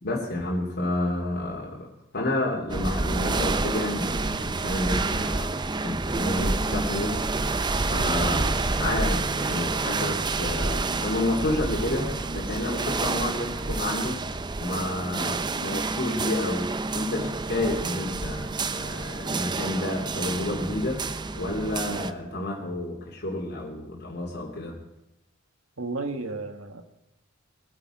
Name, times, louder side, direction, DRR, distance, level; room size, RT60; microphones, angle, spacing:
voice 1, 0.0-7.2 7.9-14.2 14.6-21.0 21.3-24.8, left 1 dB, 55° left, -2 dB, 2.7 m, -30 dB
sound 1, 2.7-22.1, right 3 dB, 20° right, 0.5 m, -28 dB
voice 2, 25.8-26.8, right 3 dB, 85° right, 6 dB, 1.6 m, -32 dB
22.0 x 9.0 x 4.9 m, 0.90 s
head